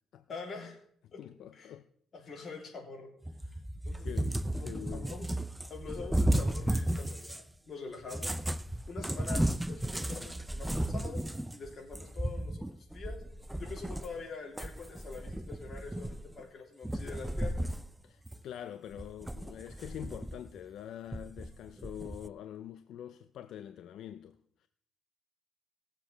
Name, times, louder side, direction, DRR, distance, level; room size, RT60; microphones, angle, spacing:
voice 1, 0.3-0.8 1.1-1.2 1.5-1.7 2.1-3.1 3.8-4.1 4.5-5.4 5.7-8.3 8.9-11.2 11.5-13.2 13.6-17.6, left 4 dB, 50° left, 3.1 m, -45 dB
voice 2, 1.0-1.9 2.2-2.4 3.4-3.6 4.0-5.1 18.0-24.7, left 10 dB, 75° left, 0.5 m, -45 dB
Cat, 3.2-7.5 8.0-14.2 14.6-16.4 16.8-17.9 18.3-18.4 18.9-20.5 21.1-22.3, right 1 dB, 10° right, 0.4 m, -34 dB
20.0 x 7.6 x 3.3 m
cardioid pair, 90°, 0 cm